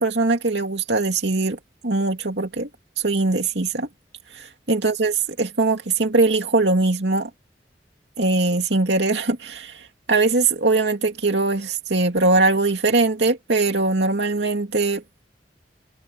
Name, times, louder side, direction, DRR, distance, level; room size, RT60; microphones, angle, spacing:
voice 1, 0.0-2.7 3.0-3.9 4.3-7.3 8.2-15.0, right 3 dB, 80° right, 2.6 m, -21 dB
open air
head